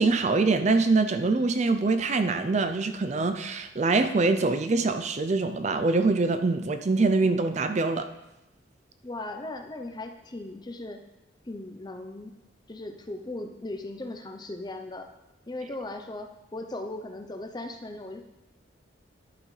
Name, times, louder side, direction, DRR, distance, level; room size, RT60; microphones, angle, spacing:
voice 1, 0.0-8.1, right 3 dB, 40° right, 9 dB, 0.4 m, -24 dB
voice 2, 9.0-11.0 11.5-12.3 12.7-15.1 15.5-18.2, left 2 dB, 20° left, 6 dB, 0.6 m, -38 dB
11.0 x 8.7 x 3.2 m, 0.97 s
head